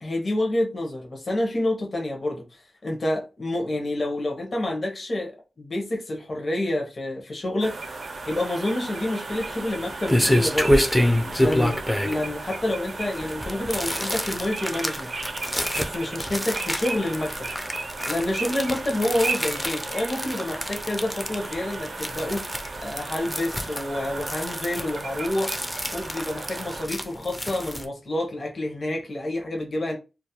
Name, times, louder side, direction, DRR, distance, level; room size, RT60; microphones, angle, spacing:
voice 1, 0.0-5.3 5.6-7.8 8.3-10.8 11.4-15.1 15.7-17.5 18.1-22.5 22.8-25.6 25.9-30.0, left 1 dB, 45° left, 0.6 m, -28 dB
sound 1, 7.6-26.8, right 3 dB, 65° right, 0.5 m, -35 dB
sound 2, 9.3-27.8, equal, 5° left, 0.3 m, -28 dB
2.3 x 2.0 x 2.7 m
wide cardioid pair, 95°, 0 cm